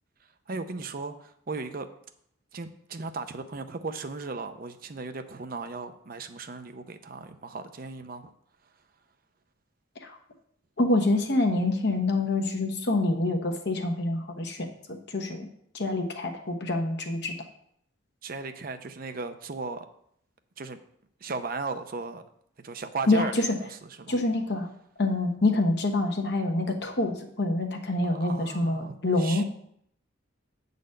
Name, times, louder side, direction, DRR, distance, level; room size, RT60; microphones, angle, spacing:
voice 1, 0.5-1.9 2.5-8.3 18.2-19.9 20.6-20.8 21.2-22.2 22.6-24.2 28.0-29.4, right 4 dB, 45° right, 9 dB, 0.6 m, -36 dB
voice 2, 10.8-15.5 15.7-17.3 23.1-23.4 24.1-24.7 25.0-29.5, left 2 dB, 60° left, 4 dB, 1.1 m, -26 dB
8.4 x 4.1 x 6.5 m, 0.69 s
head